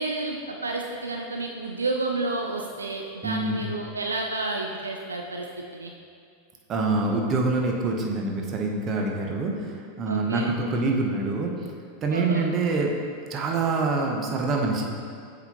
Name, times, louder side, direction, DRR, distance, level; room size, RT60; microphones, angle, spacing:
voice 1, 0.0-5.5 5.7-5.9 10.1-10.5 12.1-12.5, right 2 dB, 85° right, 2 dB, 0.4 m, -30 dB
voice 2, 3.2-3.6 6.7-11.5 12.0-12.9 13.3-14.9, right 3 dB, 35° right, 0 dB, 0.9 m, -25 dB
7.9 x 4.1 x 2.9 m, 2.3 s
figure-of-eight pair, 90°, 0 cm